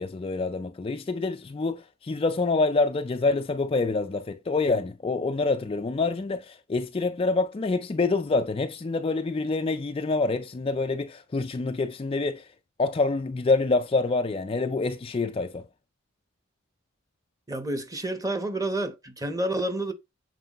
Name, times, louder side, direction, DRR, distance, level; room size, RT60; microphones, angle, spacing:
voice 1, 0.0-12.4 12.8-15.6, left 3 dB, 25° left, 0.3 m, -26 dB
voice 2, 17.5-19.9, right 1 dB, 15° right, 1.0 m, -29 dB
7.8 x 4.7 x 3.0 m
head